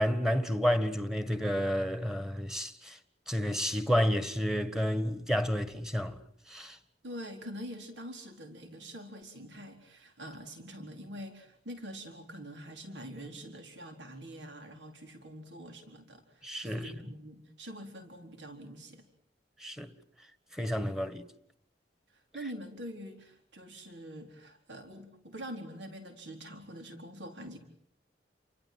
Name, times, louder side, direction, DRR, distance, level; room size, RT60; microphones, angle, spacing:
voice 1, 0.0-3.0 3.3-6.2 6.5-6.8 16.4-17.0 19.6-19.9 20.5-21.2, equal, 5° right, 1.7 m, -30 dB
voice 2, 7.0-19.1 22.1-27.6, equal, 80° right, 4.3 m, -45 dB
30.0 x 24.5 x 7.8 m
head